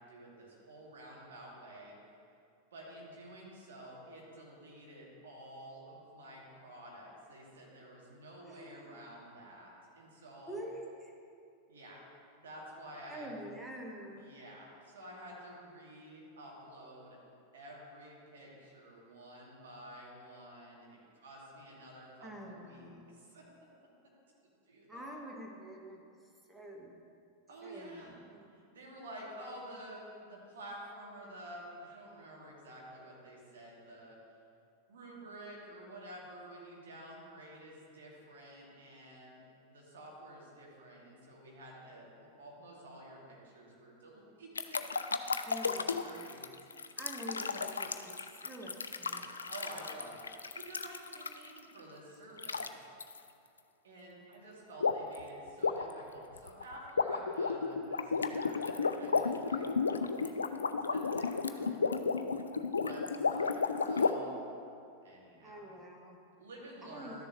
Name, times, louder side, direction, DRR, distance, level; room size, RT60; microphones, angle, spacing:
voice 1, 0.0-1.9 2.7-10.6 11.7-12.0 12.4-13.3 14.2-17.2 17.5-23.5 24.7-25.2 27.5-28.2 28.5-34.2 34.9-46.5 49.5-52.7 53.8-60.3 60.9-61.8 62.8-64.4 65.0-65.7 66.4-67.2, right 1 dB, 60° right, -3 dB, 2.3 m, -50 dB
voice 2, 8.5-9.0 10.4-11.1 13.1-14.3 22.2-23.2 24.9-26.0 26.5-26.9 27.6-28.4 45.4-46.4 47.0-48.1 48.4-49.3 65.4-66.2 66.8-67.2, equal, 10° right, -1 dB, 1.3 m, -47 dB
sound 1, 44.6-51.6 52.4-52.7 53.0-53.2 54.8-55.2 55.5-64.1, left 5 dB, 75° left, 0.4 m, -33 dB
12.5 x 6.8 x 3.1 m, 2.5 s
figure-of-eight pair, 90°, 0 cm